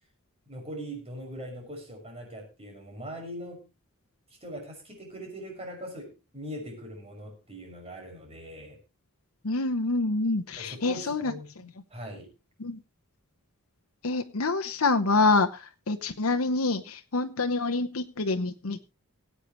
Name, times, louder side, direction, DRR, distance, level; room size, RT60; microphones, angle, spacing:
voice 1, 0.5-3.6 4.4-8.8 10.6-12.3, equal, 30° right, 1 dB, 6.2 m, -41 dB
voice 2, 9.4-11.3 12.6-12.8 14.0-18.9, left 3 dB, 70° left, 6 dB, 1.0 m, -26 dB
21.5 x 8.5 x 3.1 m, 0.28 s
head